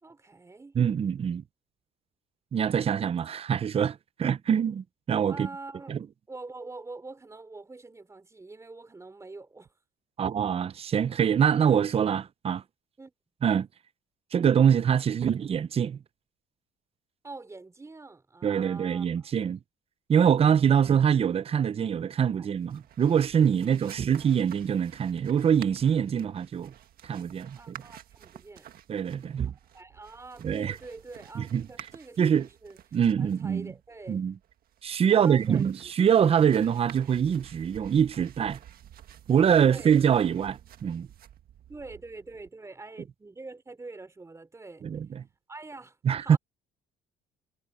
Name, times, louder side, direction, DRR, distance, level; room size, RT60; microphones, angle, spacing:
voice 1, 0.0-0.8 5.3-6.0 6.3-9.7 13.0-13.1 17.2-19.3 22.4-22.5 23.9-24.3 27.5-28.7 29.7-32.8 33.2-34.2 35.1-35.9 39.6-39.9 41.7-44.9 45.5-46.4, right 3 dB, 15° right, 3.4 m, -45 dB
voice 2, 0.8-1.4 2.5-5.5 5.9-6.0 10.2-12.6 13.4-13.7 14.3-16.0 18.4-19.6 20.1-26.7 27.0-27.7 28.9-29.5 30.4-30.7 31.4-31.6 32.2-32.5 32.9-33.7 34.1-34.3 34.8-38.6 39.3-41.1 44.8-45.2 46.0-46.4, right 8 dB, 35° right, 0.7 m, -24 dB
sound 1, 22.5-42.5, right 11 dB, 60° right, 1.6 m, -51 dB
cardioid pair, 110°, 17 cm